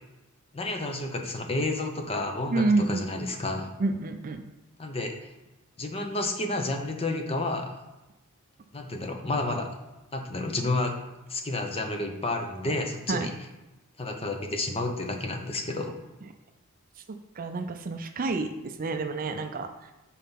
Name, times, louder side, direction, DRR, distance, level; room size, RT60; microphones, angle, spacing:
voice 1, 0.5-3.7 4.8-5.1 5.8-7.8 8.7-9.7 10.1-10.9 11.3-13.3 14.0-15.9, left 2 dB, 25° left, 4 dB, 0.8 m, -30 dB
voice 2, 2.5-3.1 3.8-4.5 13.1-13.3 17.4-19.9, right 3 dB, 40° right, 7 dB, 0.4 m, -28 dB
5.5 x 4.1 x 5.8 m, 1.0 s
head